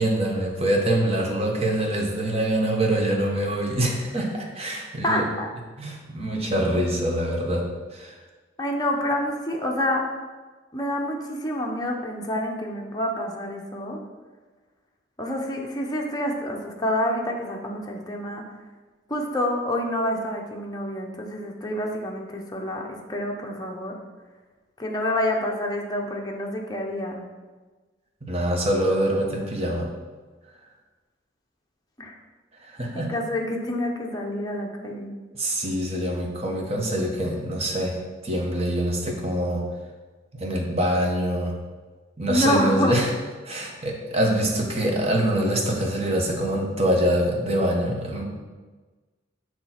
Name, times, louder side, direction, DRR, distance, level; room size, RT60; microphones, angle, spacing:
voice 1, 0.0-5.2 5.8-7.6 7.9-8.1 28.2-29.9 32.7-33.1 35.3-39.6 40.4-41.5 42.2-43.1 43.4-48.2, right 1 dB, 35° right, 0 dB, 1.2 m, -24 dB
voice 2, 5.0-5.5 8.6-10.0 10.7-14.0 15.2-18.4 19.1-24.0 24.8-27.2 32.0-32.1 32.9-35.1 42.3-43.0, left 1 dB, 20° left, 0 dB, 0.9 m, -27 dB
6.8 x 3.2 x 5.8 m, 1.3 s
head